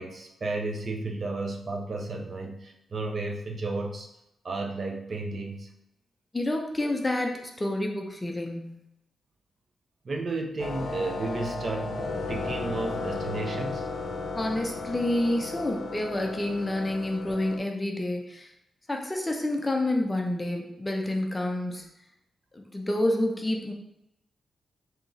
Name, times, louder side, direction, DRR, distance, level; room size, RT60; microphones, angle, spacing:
voice 1, 0.0-4.1 4.4-5.7 10.0-13.9, right 2 dB, 40° right, 2 dB, 0.5 m, -33 dB
voice 2, 6.3-8.8 14.3-18.5 18.9-21.8 22.5-23.7, left 1 dB, 15° left, 2 dB, 0.5 m, -28 dB
sound 1, 10.6-17.6, left 3 dB, 70° left, 0.6 m, -34 dB
3.8 x 2.8 x 3.9 m, 0.82 s
wide cardioid pair, 155°, 0 cm